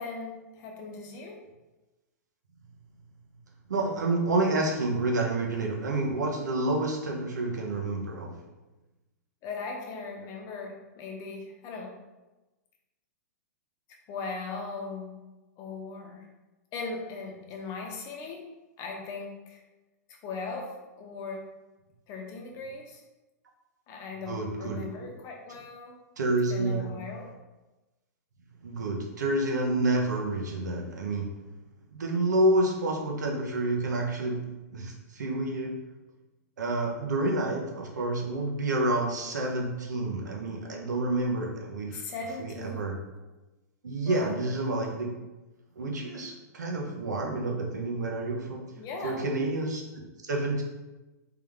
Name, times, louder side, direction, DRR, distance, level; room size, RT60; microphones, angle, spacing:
voice 1, 0.0-1.4 9.4-11.9 14.1-15.2 15.6-16.3 16.7-18.5 18.8-19.6 20.1-21.5 22.1-23.0 23.9-25.9 26.5-27.3 41.9-42.9 44.1-44.4 48.8-49.2, left 4 dB, 35° left, 1 dB, 0.8 m, -38 dB
voice 2, 3.7-8.3 24.2-24.8 26.2-26.9 28.6-31.3 31.9-34.4 34.7-35.8 36.6-42.0 42.4-42.9 43.8-45.1 45.8-48.6 49.0-49.8 50.2-50.6, right 2 dB, 90° right, 1 dB, 1.0 m, -29 dB
3.6 x 3.4 x 3.5 m, 1.1 s
hypercardioid pair, 130°, 9 cm